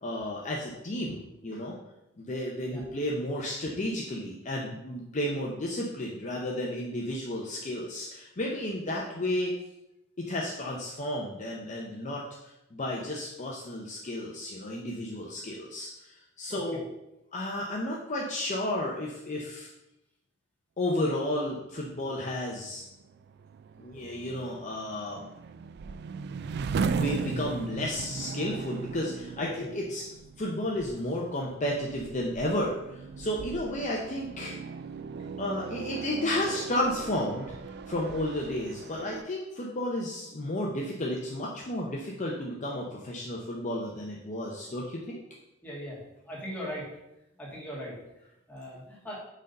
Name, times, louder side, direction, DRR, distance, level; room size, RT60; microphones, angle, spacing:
voice 1, 0.0-1.8 2.2-9.5 10.2-16.9 17.3-19.7 20.8-22.8 23.8-25.2 26.7-30.1 30.4-34.5 35.4-45.2, left 1 dB, 35° left, -2 dB, 0.7 m, -32 dB
sound 1, 22.5-39.2, right 5 dB, 55° right, 0.3 m, -38 dB
voice 2, 45.6-46.0 46.3-46.8 47.4-47.9 48.5-49.2, equal, 10° left, -6 dB, 2.4 m, -39 dB
6.3 x 3.9 x 5.4 m, 0.90 s
head